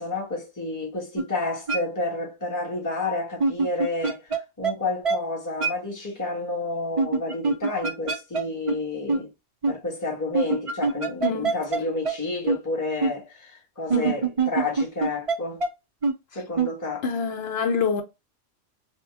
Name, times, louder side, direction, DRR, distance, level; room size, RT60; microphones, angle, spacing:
voice 1, 0.0-9.3 9.7-15.6 16.3-17.0, left 3 dB, 15° left, 1.2 m, -30 dB
sound 1, 1.2-1.3 1.7-1.8 3.4-4.4 4.6-4.7 5.0-5.2 5.6-5.7 7.0-8.4 8.7-8.8 9.1-9.2 9.6-9.7 10.3-11.8 12.0-12.1 12.5-12.6 13.0-13.1 13.9-15.4 15.6-15.7 16.0-16.1 16.6-16.7, right 4 dB, 45° right, 0.4 m, -23 dB
voice 2, 11.2-11.5 13.9-14.2 17.0-18.0, left 5 dB, 60° left, 0.9 m, -26 dB
3.6 x 2.2 x 3.4 m
omnidirectional pair, 1.3 m